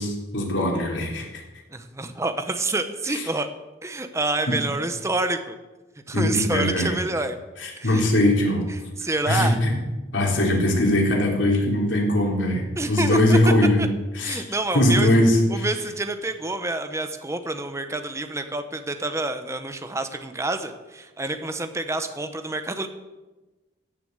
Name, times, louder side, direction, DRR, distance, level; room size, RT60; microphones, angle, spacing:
voice 1, 0.0-1.4 3.1-3.2 4.5-4.6 6.1-7.0 7.6-8.6 9.3-9.7 10.1-13.8 14.2-14.4 14.7-15.7, left 1 dB, 75° left, -1 dB, 3.6 m, -21 dB
voice 2, 1.7-3.5 3.8-5.6 6.1-7.4 7.8-8.0 9.0-9.6 12.8-13.4 13.8-13.9 14.2-15.1 15.5-22.9, right 2 dB, 15° right, 8 dB, 0.8 m, -27 dB
16.0 x 7.0 x 8.0 m, 1.1 s
head